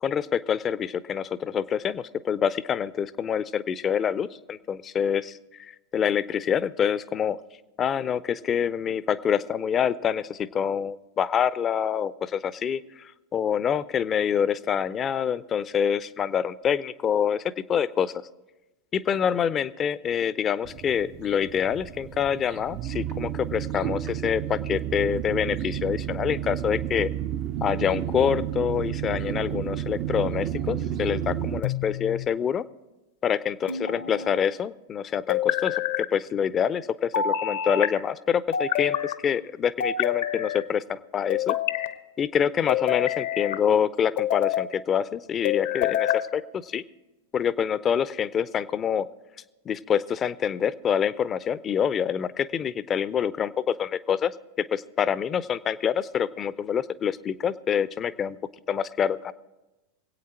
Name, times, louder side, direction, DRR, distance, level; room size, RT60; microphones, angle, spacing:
voice 1, 0.0-7.4 7.8-18.1 18.9-27.1 27.6-32.6 33.2-41.6 42.2-46.8 47.3-49.1 49.7-58.4 58.7-59.3, left 8 dB, 25° left, 18 dB, 0.5 m, -26 dB
sound 1, 20.6-31.6, right 11 dB, 40° right, 0.5 m, -31 dB
sound 2, 31.6-32.3 33.7-34.4 35.3-36.1 37.1-37.9 38.5-39.2 39.8-40.6 41.3-41.9 42.7-43.6 44.2-44.7 45.4-46.3, left 10 dB, 60° left, 0.8 m, -27 dB
24.0 x 8.6 x 4.4 m, 1.1 s
figure-of-eight pair, 90°, 0 cm